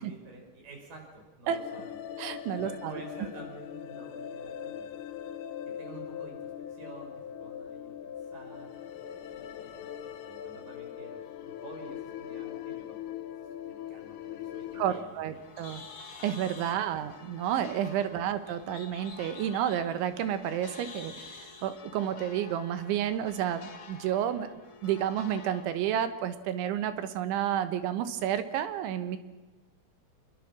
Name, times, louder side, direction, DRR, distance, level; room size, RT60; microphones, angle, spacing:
voice 1, 0.0-2.0 2.5-4.9 5.6-8.7 9.3-10.0 10.2-13.0 13.6-15.9 18.1-18.3, right 2 dB, 45° right, 2 dB, 6.9 m, -50 dB
sound 1, 1.5-15.0, left 9 dB, 85° left, 3.7 m, -41 dB
voice 2, 2.2-3.0 14.8-15.8 16.2-24.5 24.8-29.2, right 10 dB, 75° right, 11 dB, 3.5 m, -31 dB
Bird, 14.7-21.8, left 4 dB, 35° left, 2.0 m, -50 dB
sound 2, 15.3-25.6, left 5 dB, 60° left, 1.3 m, -50 dB
26.0 x 21.5 x 6.1 m, 1.2 s
omnidirectional pair, 5.6 m